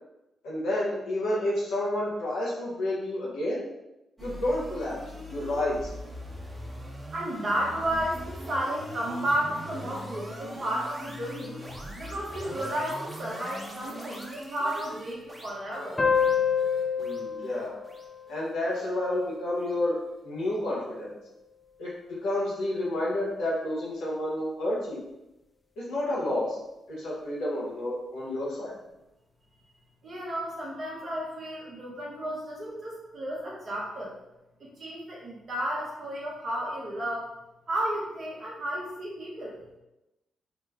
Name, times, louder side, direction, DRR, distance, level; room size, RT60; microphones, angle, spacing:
voice 1, 0.4-3.6 4.2-5.0 5.3-5.9 17.0-17.7 18.3-20.0 20.2-21.1 21.8-21.9 22.2-25.0 25.8-26.6 26.9-28.7, left 1 dB, 85° left, -6 dB, 0.8 m, -30 dB
sound 1, 4.2-19.4, equal, 20° right, 0.8 m, -41 dB
voice 2, 7.1-11.6 12.0-16.0 30.0-34.2 34.6-37.3 37.7-39.6, right 1 dB, 55° right, -4 dB, 0.8 m, -32 dB
sound 2, 16.0-19.1, left 6 dB, 35° left, 0.5 m, -28 dB
3.0 x 2.1 x 3.5 m, 0.94 s
supercardioid pair, 50°, 0 cm